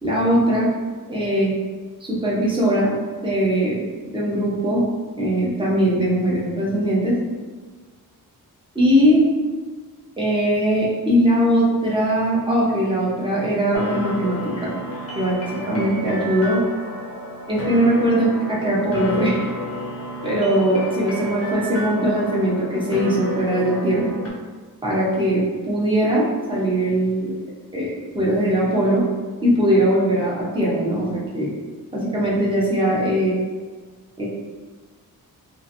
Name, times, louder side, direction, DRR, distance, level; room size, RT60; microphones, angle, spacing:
voice 1, 0.0-0.7 1.1-1.5 2.0-3.0 3.2-3.8 4.1-4.8 5.2-7.2 8.7-9.2 10.2-14.8 15.2-16.6 17.5-19.4 20.2-24.1 24.8-27.3 27.7-29.0 29.4-31.5 31.9-33.4 34.2-34.3, right 1 dB, 15° right, -6 dB, 0.6 m, -20 dB
sound 1, 13.7-24.3, equal, 40° left, 0.5 m, -31 dB
2.7 x 2.5 x 2.5 m, 1.5 s
wide cardioid pair, 170°, 38 cm